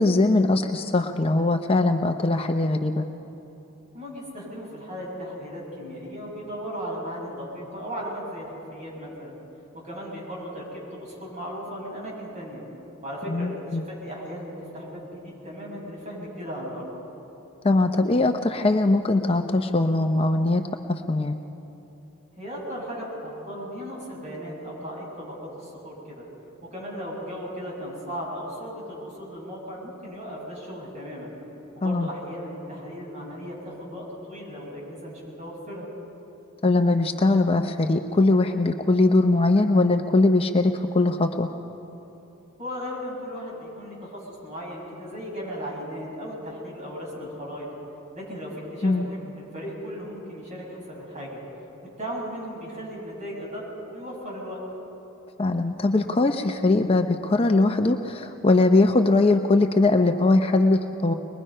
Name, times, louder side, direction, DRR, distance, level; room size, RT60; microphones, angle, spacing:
voice 1, 0.0-3.0 13.3-13.8 17.6-20.6 20.9-21.4 31.8-32.1 36.6-41.5 48.8-49.1 55.4-61.1, left 2 dB, 30° left, 6 dB, 0.6 m, -21 dB
voice 2, 3.9-9.4 9.8-12.6 13.0-16.9 22.4-26.3 26.7-31.3 31.7-35.8 42.6-47.7 48.1-51.4 52.0-54.6, equal, 35° right, -4 dB, 6.7 m, -36 dB
22.5 x 21.5 x 5.5 m, 2.9 s
head